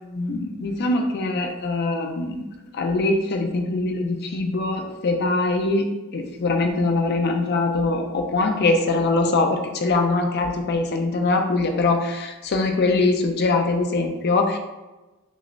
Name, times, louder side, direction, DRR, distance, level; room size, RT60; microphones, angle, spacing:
voice 1, 0.0-2.4 2.7-5.9 6.1-14.6, left 3 dB, 50° left, 4 dB, 0.4 m, -22 dB
6.1 x 2.1 x 2.4 m, 1.1 s
head